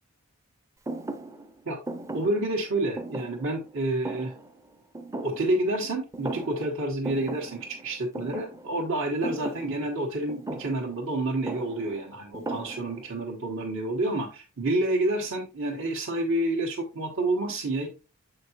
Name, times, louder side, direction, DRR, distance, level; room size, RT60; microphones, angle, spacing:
Thump thud, 0.9-5.9 6.1-6.8 7.0-13.2, right 2 dB, 15° right, 0.4 m, -38 dB
voice 1, 2.1-4.3 5.2-17.9, right 2 dB, 65° right, -2 dB, 1.2 m, -29 dB
7.9 x 5.1 x 2.8 m, 0.31 s
head